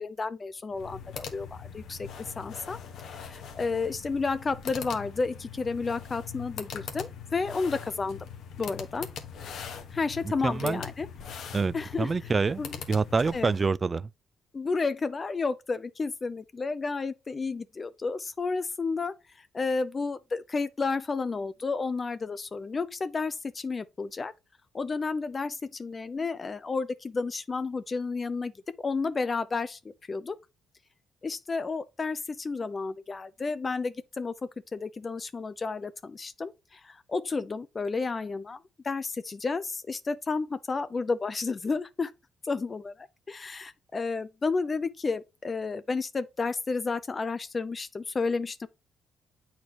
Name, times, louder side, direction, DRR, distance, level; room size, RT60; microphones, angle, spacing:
voice 1, 0.0-2.8 3.0-8.2 8.6-9.1 9.9-11.1 11.7-12.1 12.6-12.8 13.3-13.5 14.5-19.1 19.5-24.3 24.7-28.5 28.8-29.8 30.1-30.4 31.2-34.3 34.7-38.6 38.8-42.1 42.4-48.7, left 4 dB, 35° left, 0.5 m, -31 dB
sound 1, 0.7-13.7, left 7 dB, 75° left, 1.2 m, -42 dB
voice 2, 10.2-10.8 11.5-12.6 12.9-14.1, right 4 dB, 30° right, 0.3 m, -27 dB
8.3 x 4.4 x 3.0 m
cardioid pair, 90°, 0 cm